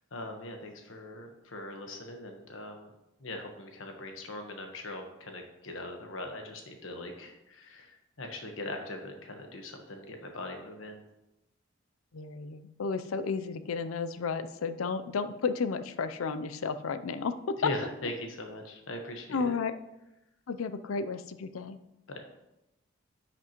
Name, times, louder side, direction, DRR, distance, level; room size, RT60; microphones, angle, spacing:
voice 1, 0.1-2.9 3.2-11.0 17.6-19.5 22.1-22.2, left 1 dB, 75° left, 4 dB, 1.2 m, -40 dB
voice 2, 12.1-17.3 19.3-19.7 20.5-21.8, left 5 dB, 90° left, 12 dB, 0.5 m, -33 dB
10.5 x 5.9 x 3.0 m, 0.92 s
head